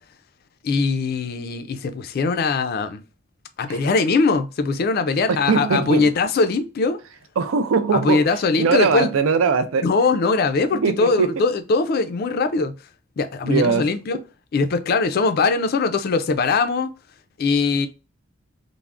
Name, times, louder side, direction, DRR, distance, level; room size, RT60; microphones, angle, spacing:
voice 1, 0.6-3.0 3.6-7.0 7.9-9.1 9.8-12.7 13.2-14.2 14.5-16.9 17.4-17.9, left 4 dB, 50° left, 0.3 m, -21 dB
voice 2, 5.3-6.1 7.4-8.3 8.6-9.9 10.7-11.3 13.5-13.9, right 5 dB, 80° right, 0.4 m, -21 dB
3.3 x 2.0 x 2.4 m
head